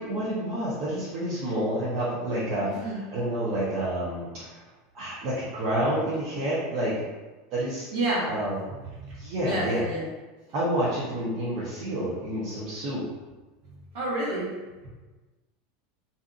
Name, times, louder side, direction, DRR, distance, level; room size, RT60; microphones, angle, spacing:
voice 1, 0.0-4.6 4.9-7.1 7.5-7.9 8.2-8.6 9.2-9.8 10.5-13.0, right 1 dB, 50° right, -9 dB, 0.7 m, -29 dB
voice 2, 2.7-3.0 7.9-8.3 8.9-10.1 13.6-14.5, right 1 dB, 70° right, -6 dB, 1.1 m, -30 dB
2.7 x 2.4 x 2.4 m, 1.2 s
supercardioid pair, 140°, 0 cm